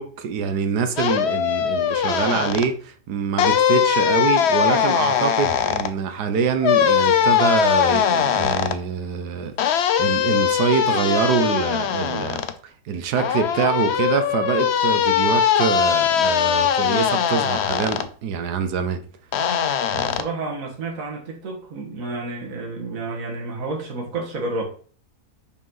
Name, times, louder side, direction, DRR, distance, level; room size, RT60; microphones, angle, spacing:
voice 1, 0.0-12.4 12.8-19.0, right 6 dB, 85° right, 1.4 m, -25 dB
sound 1, 1.0-2.7 3.4-5.9 6.6-8.8 9.6-12.5 13.2-18.1 19.3-20.2, left 8 dB, 60° left, 0.7 m, -20 dB
voice 2, 19.9-24.6, right 3 dB, 60° right, 1.9 m, -30 dB
5.3 x 5.1 x 5.6 m
omnidirectional pair, 1.7 m